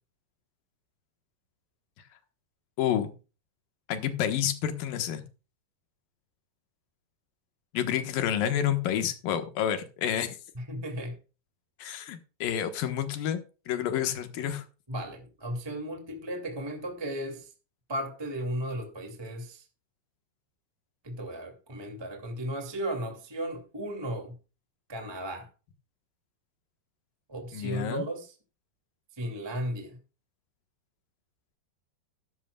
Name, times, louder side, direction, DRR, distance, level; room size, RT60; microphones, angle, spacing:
voice 1, 2.8-3.1 3.9-5.2 7.7-10.4 11.8-13.4 13.7-14.6 27.5-28.0, left 10 dB, 65° left, 2.7 m, -29 dB
voice 2, 10.5-11.2 14.9-17.5 17.9-19.6 21.0-24.4 24.9-25.5 27.3-28.3 29.2-30.0, right 1 dB, 10° right, 1.1 m, -35 dB
13.5 x 12.0 x 2.3 m
omnidirectional pair, 4.9 m